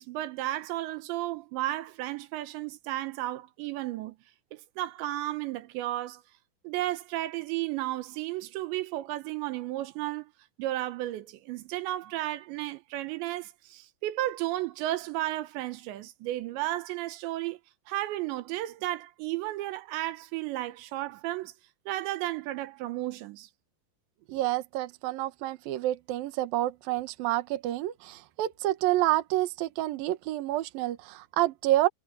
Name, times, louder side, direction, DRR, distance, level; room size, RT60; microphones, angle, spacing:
voice 1, 0.0-4.2 4.5-6.2 6.6-10.3 10.6-17.6 17.9-21.5 21.9-23.5, right 15 dB, 85° right, 3.3 m, -33 dB
voice 2, 24.3-31.9, right 15 dB, 65° right, 2.6 m, -28 dB
omnidirectional pair, 5.1 m